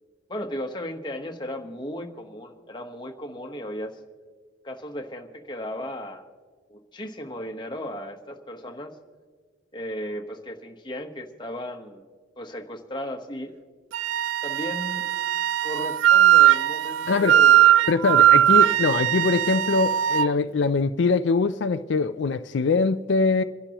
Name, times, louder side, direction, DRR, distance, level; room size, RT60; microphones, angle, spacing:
voice 1, 0.3-4.0 4.6-6.3 6.7-9.0 9.7-12.0 12.4-13.6 14.4-15.0 15.6-17.8, equal, 25° left, 1.2 m, -35 dB
Wind instrument woodwind instrument, 13.9-20.3, right 11 dB, 75° right, 0.3 m, -19 dB
voice 2, 17.9-23.4, left 4 dB, 70° left, 0.4 m, -23 dB
28.0 x 11.5 x 3.0 m
head